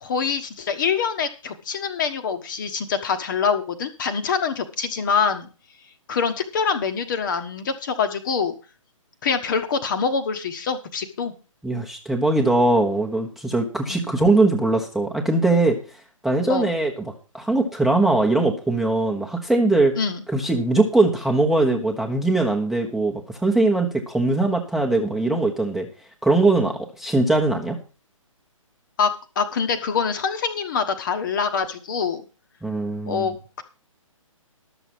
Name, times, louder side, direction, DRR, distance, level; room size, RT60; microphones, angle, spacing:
voice 1, 0.0-5.5 6.1-8.5 9.2-11.3 13.9-14.1 16.5-16.7 20.0-20.2 29.0-29.1 29.3-32.2 33.0-33.6, left 6 dB, 35° left, 8 dB, 1.2 m, -25 dB
voice 2, 11.6-15.8 16.2-20.0 20.3-25.9 26.2-27.8 32.6-33.3, right 2 dB, ahead, 1 dB, 1.1 m, -21 dB
12.0 x 6.9 x 6.0 m, 0.34 s
figure-of-eight pair, 135°, 18 cm